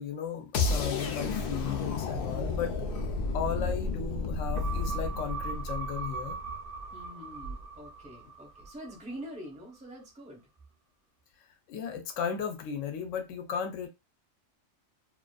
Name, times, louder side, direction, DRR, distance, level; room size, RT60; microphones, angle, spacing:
voice 1, 0.0-2.9 3.3-6.4 11.7-13.9, left 7 dB, 80° left, 1.0 m, -35 dB
sound 1, 0.5-6.5, left 3 dB, 60° left, 0.6 m, -32 dB
voice 2, 0.6-1.0 3.0-3.1 6.9-10.4, equal, 5° right, 0.6 m, -45 dB
sound 2, 4.6-9.2 9.6-9.7, right 4 dB, 55° right, 0.6 m, -40 dB
2.5 x 2.4 x 2.2 m
omnidirectional pair, 1.3 m